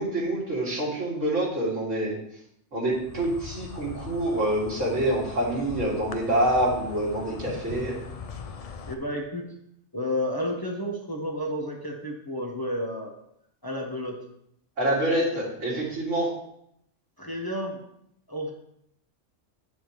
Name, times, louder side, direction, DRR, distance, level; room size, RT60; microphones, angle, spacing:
voice 1, 0.0-2.2 2.7-8.0 14.8-16.3, right 1 dB, 80° right, -6 dB, 2.8 m, -26 dB
Insect, 2.9-8.9, left 6 dB, 55° left, 0.4 m, -40 dB
voice 2, 8.9-9.5 9.9-13.1 13.6-14.2 17.2-17.8 18.3-18.5, equal, 20° left, -2 dB, 1.0 m, -31 dB
8.7 x 7.3 x 3.1 m, 0.75 s
omnidirectional pair, 1.3 m